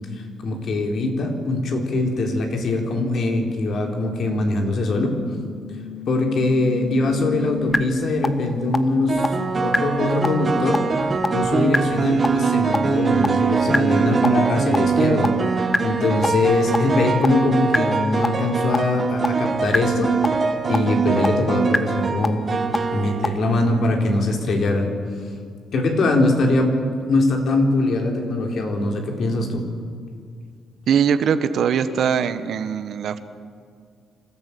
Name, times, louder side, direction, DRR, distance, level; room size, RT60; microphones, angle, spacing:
voice 1, 0.4-5.2 6.1-9.2 9.6-10.8 11.3-15.3 15.8-20.1 20.7-22.4 22.9-24.9 25.7-26.7 27.1-29.6, left 2 dB, 60° left, 2 dB, 3.9 m, -22 dB
sound 1, 5.3-7.8 8.2-8.3 8.7-8.8 9.2-9.3 9.7-9.8 10.2-10.3 10.7-10.8 11.2-11.3 11.7-11.8 12.2-12.3 12.7-12.8 13.2-13.3 13.7-13.8 14.2-14.3 14.7-14.8 15.2-15.3 15.7-15.8 16.2-16.3 16.7-16.8 17.2-17.3 17.7-17.8 18.2-18.3 18.7-18.8 19.2-19.3 19.7-19.8 20.2-20.3 20.7-20.8 21.2-21.3 21.7-21.8 22.2-22.3 22.7-22.8 23.2-23.3, left 3 dB, 25° left, 1.2 m, -22 dB
sound 2, 7.5-7.8 9.1-23.9, right 5 dB, 35° right, 1.6 m, -23 dB
voice 2, 30.9-33.2, right 7 dB, 65° right, 10 dB, 1.3 m, -21 dB
26.0 x 14.0 x 8.7 m, 2.2 s
cardioid pair, 90°, 0 cm